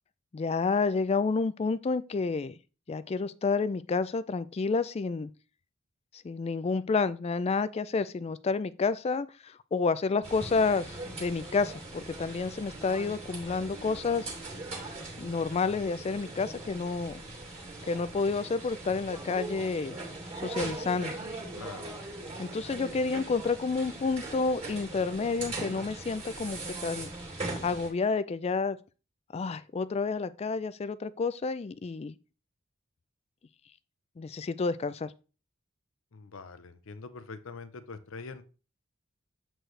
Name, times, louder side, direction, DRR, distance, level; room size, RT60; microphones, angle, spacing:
voice 1, 0.3-2.5 2.9-5.3 6.2-14.3 15.2-17.2 17.9-20.0 20.4-21.1 22.4-27.1 27.6-28.8 29.3-32.2 34.2-35.1, left 4 dB, 30° left, 0.3 m, -30 dB
sound 1, 10.2-27.9, right 2 dB, 30° right, 2.5 m, -40 dB
voice 2, 21.5-22.0 36.1-38.4, left 4 dB, 70° left, 0.7 m, -44 dB
7.8 x 4.5 x 3.2 m
head